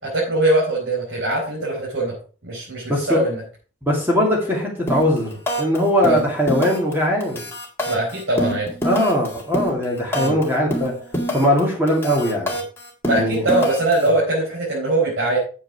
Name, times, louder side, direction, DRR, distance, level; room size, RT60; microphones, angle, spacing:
voice 1, 0.0-2.1 2.4-3.4 6.0-6.2 7.9-8.7 10.1-10.4 13.0-15.4, right 2 dB, 85° right, -6 dB, 4.6 m, -21 dB
voice 2, 2.9-3.2 3.9-7.4 8.8-10.9 11.3-12.6 13.1-13.5, left 1 dB, 10° right, -2 dB, 2.4 m, -20 dB
sound 1, 4.9-5.2 5.5-5.8 6.0-6.9 7.2-10.4 10.7-11.6 11.9-14.1, equal, 10° left, 2.0 m, -25 dB
8.9 x 7.7 x 4.7 m, 0.38 s
head